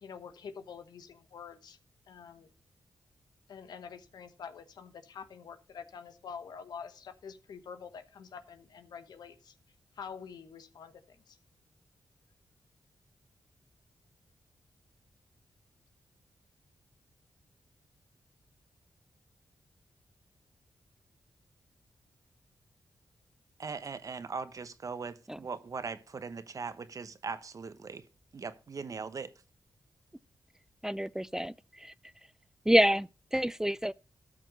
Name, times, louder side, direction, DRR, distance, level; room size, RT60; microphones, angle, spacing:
voice 1, 0.0-1.8 2.1-2.5 3.5-9.5 10.0-11.0 11.3-11.4, left 6 dB, 80° left, 1.0 m, -46 dB
voice 2, 23.6-28.0 28.3-29.3, right 5 dB, 55° right, 1.0 m, -40 dB
voice 3, 30.8-31.5 31.8-31.9 32.7-33.9, equal, 5° right, 0.4 m, -27 dB
13.0 x 5.9 x 5.3 m
cardioid pair, 50°, 7 cm